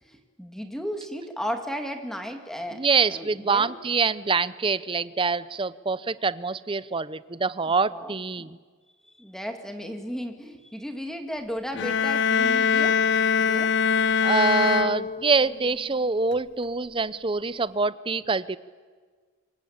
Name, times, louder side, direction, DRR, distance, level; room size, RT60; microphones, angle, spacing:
voice 1, 0.0-2.8 3.1-3.7 7.9-8.2 9.0-13.0 13.4-13.7, equal, ahead, 5 dB, 2.2 m, -34 dB
voice 2, 2.7-8.6 14.2-18.6, right 4 dB, 25° right, 17 dB, 0.7 m, -25 dB
sound 1, 11.7-15.6, left 6 dB, 60° left, 0.7 m, -23 dB
25.5 x 22.5 x 8.8 m, 1.5 s
head